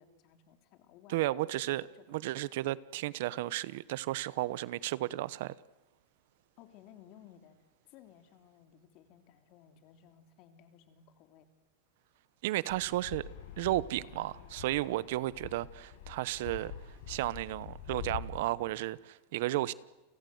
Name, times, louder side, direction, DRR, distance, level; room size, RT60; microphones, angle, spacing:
voice 1, 0.0-2.2 6.6-7.6 7.8-11.5, left 9 dB, 45° left, 3.2 m, -58 dB
voice 2, 1.1-5.5 12.4-13.2 13.6-16.7 17.1-19.7, right 16 dB, 65° right, 0.9 m, -33 dB
Fixed-wing aircraft airplane, 12.7-18.2, left 9 dB, 70° left, 7.3 m, -45 dB
30.0 x 23.5 x 8.0 m
supercardioid pair, 140°, 0 cm